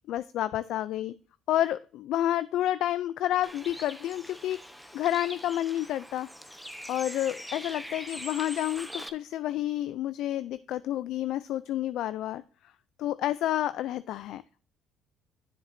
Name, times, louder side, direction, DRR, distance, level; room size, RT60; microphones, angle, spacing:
voice 1, 0.1-1.1 1.5-4.6 4.9-6.3 6.9-12.4 13.0-14.4, left 12 dB, 70° left, 15 dB, 0.3 m, -29 dB
Bird, 3.4-9.1, equal, ahead, 0.8 m, -43 dB
10.0 x 7.3 x 2.6 m, 0.40 s
cardioid pair, 95°, 0 cm